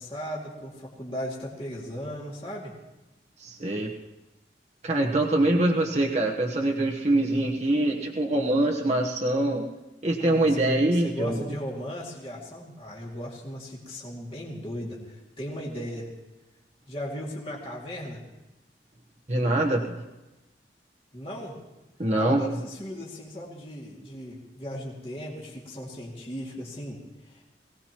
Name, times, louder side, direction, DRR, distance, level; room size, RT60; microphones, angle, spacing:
voice 1, 0.0-2.7 10.2-16.1 16.9-18.2 21.1-21.6 22.1-27.4, equal, 35° left, -4 dB, 2.4 m, -37 dB
voice 2, 3.4-3.9 4.8-9.7 10.0-11.5 19.3-20.0 22.0-22.4, right 1 dB, 40° right, -1 dB, 1.1 m, -24 dB
22.5 x 17.5 x 3.0 m, 1.0 s
head